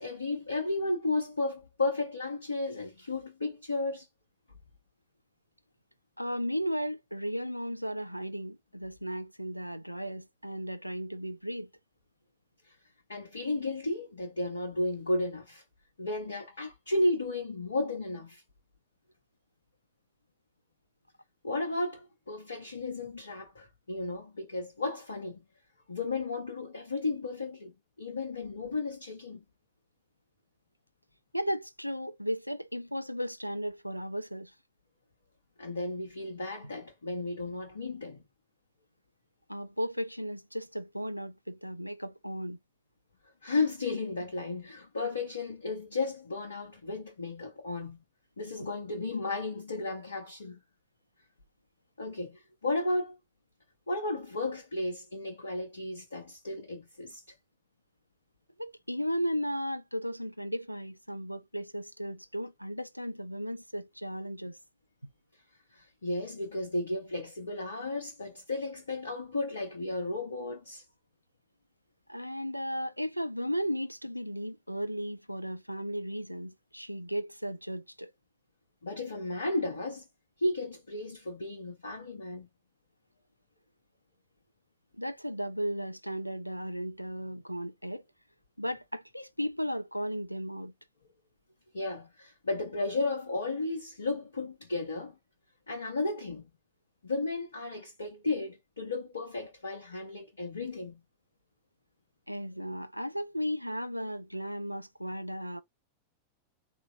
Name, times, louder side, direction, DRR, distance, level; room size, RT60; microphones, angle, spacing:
voice 1, 0.0-4.1 12.7-12.8 13.1-15.6 16.0-18.4 21.4-25.4 25.9-27.7 28.0-29.4 35.6-38.2 43.4-48.0 48.4-50.6 52.0-53.2 53.9-57.3 65.7-70.8 78.8-80.0 80.4-82.5 91.7-95.2 95.7-96.5 97.0-101.0, left 2 dB, 75° left, 0.8 m, -34 dB
voice 2, 6.2-11.7 31.3-34.5 39.5-42.6 58.6-64.6 72.1-78.1 85.0-88.0 88.6-90.7 102.3-105.6, equal, 90° right, 0.3 m, -35 dB
3.8 x 2.8 x 2.5 m
figure-of-eight pair, 90°, 0 cm